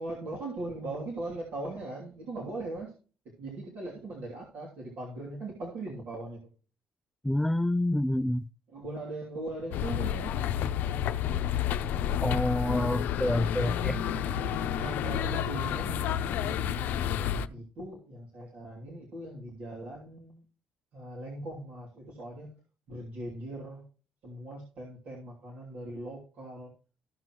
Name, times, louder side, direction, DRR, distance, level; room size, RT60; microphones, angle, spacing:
voice 1, 0.0-2.9 3.2-6.4 8.7-10.4 14.0-14.1 14.7-17.0 17.5-20.4 20.9-22.6 22.9-23.8 24.2-26.7, right 2 dB, 65° right, 2.8 m, -40 dB
voice 2, 7.2-8.5 12.2-14.0, left 1 dB, 10° left, 0.3 m, -28 dB
sound 1, 9.7-17.5, left 9 dB, 70° left, 0.6 m, -30 dB
14.5 x 6.0 x 3.0 m
supercardioid pair, 70°, 3 cm